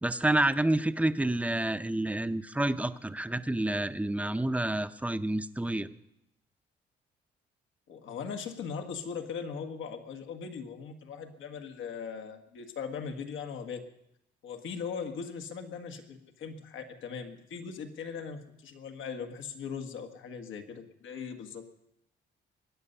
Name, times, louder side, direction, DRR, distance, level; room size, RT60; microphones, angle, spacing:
voice 1, 0.0-5.9, right 1 dB, 5° right, 11 dB, 0.7 m, -29 dB
voice 2, 7.9-13.8 14.4-21.6, left 6 dB, 80° left, 6 dB, 1.7 m, -39 dB
23.0 x 9.8 x 5.5 m, 0.80 s
cardioid pair, 90°, 20 cm